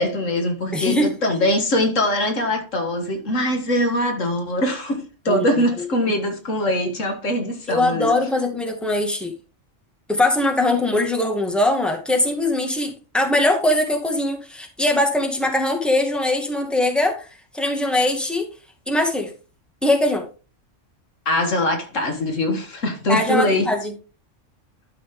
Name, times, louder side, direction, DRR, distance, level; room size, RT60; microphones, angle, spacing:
voice 1, 0.0-8.1 21.3-23.7, left 1 dB, 80° left, 2.1 m, -22 dB
voice 2, 0.7-1.1 5.3-5.5 7.7-9.3 10.1-17.3 17.5-18.4 18.9-19.3 19.8-20.2 23.1-23.9, left 1 dB, ahead, 1.9 m, -21 dB
12.0 x 6.2 x 3.7 m
omnidirectional pair, 1.3 m